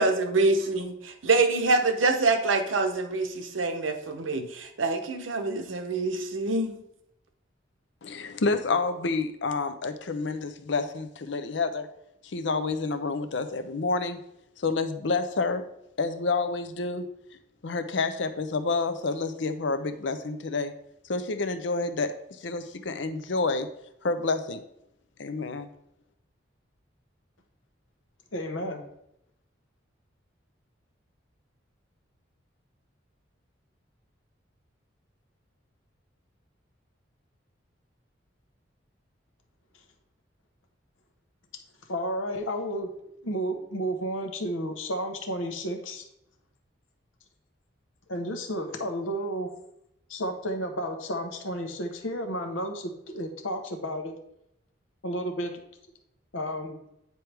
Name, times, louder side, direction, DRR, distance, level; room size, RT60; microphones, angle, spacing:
voice 1, 0.0-6.8, right 3 dB, 80° right, 6 dB, 0.9 m, -25 dB
voice 2, 8.0-11.9 12.2-14.2 14.6-15.6 16.0-17.1 17.6-20.7 21.0-23.7 24.0-24.6 25.2-25.7, left 3 dB, 65° left, 10 dB, 0.6 m, -29 dB
voice 3, 28.3-28.8 41.9-42.9 43.2-46.0 48.1-49.5 50.1-54.1 55.0-55.5 56.3-56.8, equal, 85° left, 4 dB, 1.1 m, -32 dB
9.3 x 4.5 x 3.4 m, 0.80 s
head